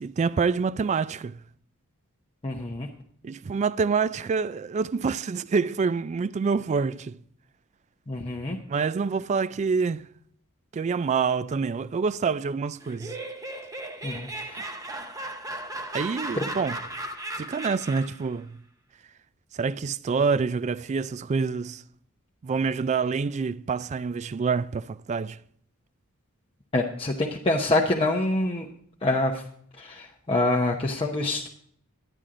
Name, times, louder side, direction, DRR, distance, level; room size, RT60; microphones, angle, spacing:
voice 1, 0.0-1.4 3.2-7.2 8.7-10.1 10.7-13.2 14.6-14.7 15.9-16.8 17.4-18.6 19.5-21.8 22.4-25.4, right 5 dB, 30° right, 0.3 m, -27 dB
voice 2, 2.4-2.9 8.1-8.6 14.0-14.6 26.7-28.7 29.0-29.3 29.8-31.5, left 2 dB, 25° left, 0.8 m, -26 dB
Laughter, 12.8-18.3, right 1 dB, 15° right, 0.8 m, -36 dB
10.5 x 10.0 x 3.7 m
head